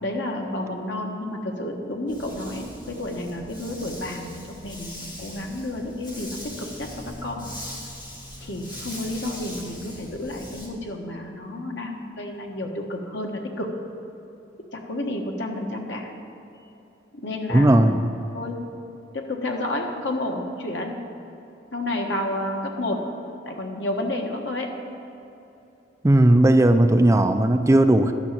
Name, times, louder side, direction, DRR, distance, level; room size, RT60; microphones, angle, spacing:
voice 1, 0.0-7.5 8.4-13.7 14.7-16.1 17.1-17.9 18.3-18.6 19.1-21.0 21.7-23.0 23.4-24.7, left 1 dB, 80° left, 2 dB, 1.4 m, -30 dB
Dog, 2.1-10.7, left 1 dB, 25° left, 1.9 m, -40 dB
voice 2, 17.5-18.1 26.0-28.1, right 1 dB, 15° right, 7 dB, 0.4 m, -16 dB
12.0 x 6.2 x 8.5 m, 2.9 s
head